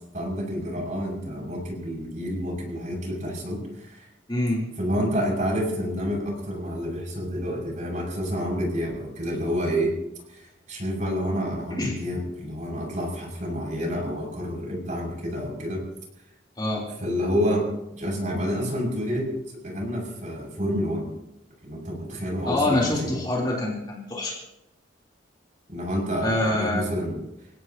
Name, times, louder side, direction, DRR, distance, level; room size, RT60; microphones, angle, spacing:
voice 1, 0.1-4.1 4.8-10.0 10.3-15.8 17.0-19.3 19.6-21.1 21.6-23.1 25.7-27.2, equal, 40° right, -1 dB, 6.3 m, -29 dB
voice 2, 4.3-4.7 11.8-11.9 16.6-16.9 22.5-24.3 26.2-26.8, left 1 dB, 20° left, -3 dB, 3.5 m, -25 dB
28.0 x 17.0 x 2.9 m, 0.85 s
head